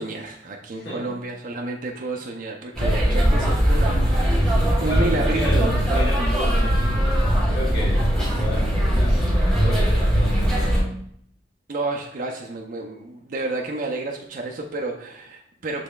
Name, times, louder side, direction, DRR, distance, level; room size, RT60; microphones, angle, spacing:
voice 1, 0.0-6.3 11.7-15.8, right 2 dB, 50° right, 0 dB, 0.5 m, -30 dB
voice 2, 0.7-1.1 4.8-10.9, equal, 65° left, -6 dB, 1.2 m, -32 dB
sound 1, 2.7-10.8, equal, 5° left, 1.2 m, -20 dB
6.8 x 3.1 x 2.3 m, 0.69 s
head